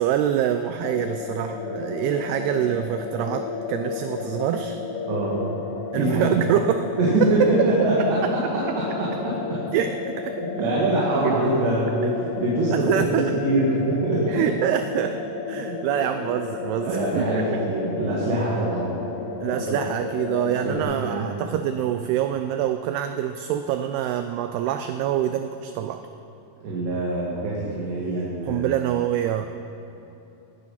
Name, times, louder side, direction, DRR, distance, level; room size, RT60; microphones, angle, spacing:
voice 1, 0.0-4.8 5.9-6.9 7.4-7.5 8.0-8.3 9.7-10.5 11.3-11.4 12.7-13.3 14.3-17.4 19.4-26.1 28.5-29.5, right 10 dB, 90° right, 8 dB, 2.2 m, -25 dB
sound 1, 0.8-20.8, left 5 dB, 85° left, 1.9 m, -32 dB
voice 2, 5.1-5.6 5.9-6.4 7.0-9.6 10.6-14.4 16.8-19.0 19.7-19.8 20.6-21.3 26.6-28.7, right 1 dB, 70° right, -6 dB, 4.2 m, -24 dB
18.5 x 10.5 x 5.7 m, 2.9 s
omnidirectional pair, 5.2 m